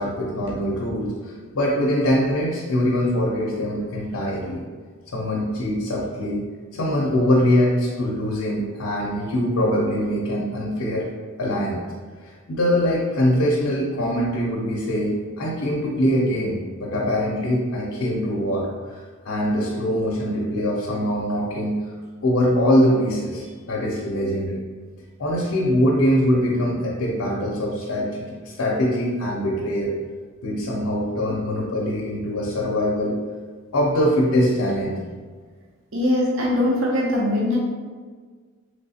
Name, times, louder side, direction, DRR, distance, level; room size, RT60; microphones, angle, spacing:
voice 1, 0.0-4.6 5.1-6.5 6.7-11.1 11.4-11.8 12.2-21.8 22.2-24.6 25.2-29.9 30.4-33.2 33.7-35.0, equal, 85° left, -3 dB, 0.6 m, -23 dB
voice 2, 35.9-37.6, left 1 dB, 65° right, -4 dB, 0.6 m, -21 dB
3.3 x 3.1 x 2.8 m, 1.6 s
head